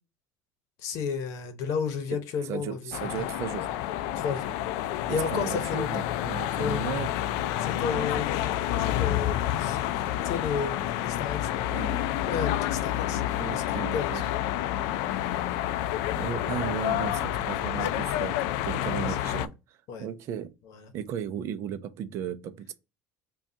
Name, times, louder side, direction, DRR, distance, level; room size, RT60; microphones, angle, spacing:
voice 1, 0.8-2.8 3.2-3.3 4.1-4.5 5.1-6.0 6.6-6.9 7.6-8.5 8.8-9.8 10.2-10.7 11.0-11.6 12.3-14.4 17.3-17.4 17.7-17.9 18.9-19.4 19.9-20.1, left 6 dB, 55° left, 0.9 m, -33 dB
voice 2, 2.1-3.7 5.1-7.1 7.9-8.3 11.7-12.0 13.4-14.3 16.2-18.4 18.6-20.5 20.9-22.7, right 9 dB, 45° right, 0.5 m, -36 dB
sound 1, 2.9-19.5, left 12 dB, 80° left, 0.3 m, -29 dB
5.2 x 2.3 x 2.7 m
cardioid pair, 170°, 6 cm